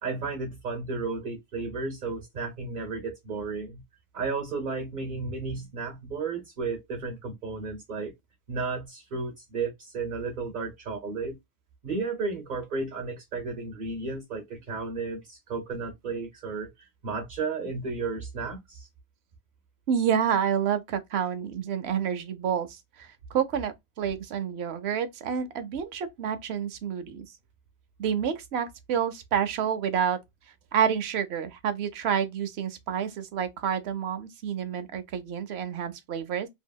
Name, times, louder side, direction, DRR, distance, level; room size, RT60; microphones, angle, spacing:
voice 1, 0.0-3.8 4.1-8.1 8.5-11.4 11.8-18.9, right 4 dB, 50° right, 0.9 m, -33 dB
voice 2, 19.9-27.3 28.0-30.2 30.7-36.5, right 8 dB, 80° right, 0.9 m, -29 dB
2.9 x 2.6 x 2.2 m
omnidirectional pair, 1.1 m